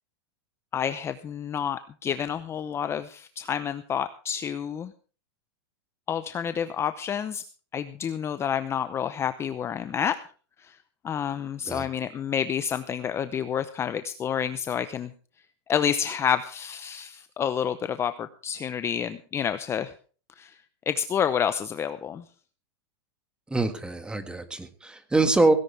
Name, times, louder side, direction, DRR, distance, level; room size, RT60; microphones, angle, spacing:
voice 1, 0.7-4.9 6.1-7.4 7.7-10.2 10.6-10.8 11.0-15.1 15.7-19.9 20.4-20.5 20.9-22.2, left 8 dB, 20° left, 11 dB, 0.7 m, -29 dB
voice 2, 23.5-25.5, right 2 dB, 5° right, 9 dB, 1.7 m, -24 dB
17.5 x 16.0 x 3.4 m, 0.39 s
supercardioid pair, 150°, 14 cm